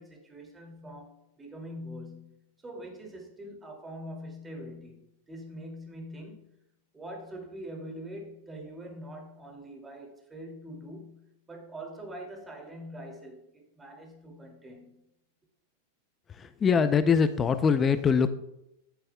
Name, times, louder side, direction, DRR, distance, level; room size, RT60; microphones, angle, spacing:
voice 1, 0.0-6.5 6.9-15.1, equal, 15° right, 2.5 m, -44 dB
voice 2, 16.3-18.3, left 6 dB, 20° left, 0.5 m, -23 dB
14.5 x 9.3 x 2.3 m
hypercardioid pair, 130°, 0 cm